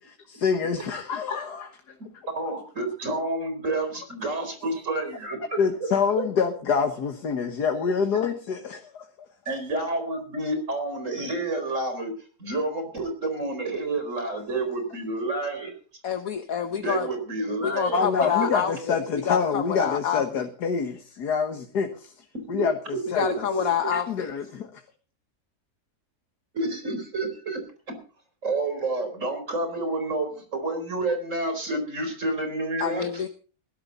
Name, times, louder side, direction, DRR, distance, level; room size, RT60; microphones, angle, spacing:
voice 1, 0.3-2.0 5.6-9.0 17.9-23.5 23.9-24.8, left 6 dB, 85° left, 5 dB, 2.0 m, -27 dB
voice 2, 2.4-5.6 9.5-12.1 12.4-15.8 16.8-18.1 18.4-18.5 22.6-22.7 23.2-23.6 26.5-27.6 28.4-33.2, right 2 dB, 50° right, 6 dB, 4.6 m, -29 dB
voice 3, 16.0-17.1 17.6-19.0 19.3-20.5 23.2-24.3 32.8-33.3, left 8 dB, 65° left, 8 dB, 1.5 m, -27 dB
20.0 x 12.5 x 4.1 m, 0.38 s
omnidirectional pair, 1.7 m